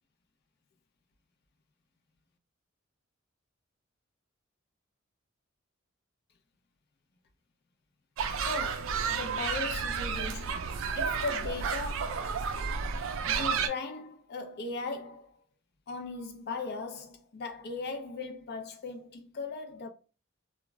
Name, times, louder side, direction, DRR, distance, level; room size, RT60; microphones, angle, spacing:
sound 1, 8.2-13.7, right 6 dB, 70° right, 0.3 m, -31 dB
voice 1, 8.3-12.3 13.3-15.4 15.9-19.9, left 3 dB, 55° left, 0.5 m, -38 dB
2.1 x 2.0 x 3.4 m
head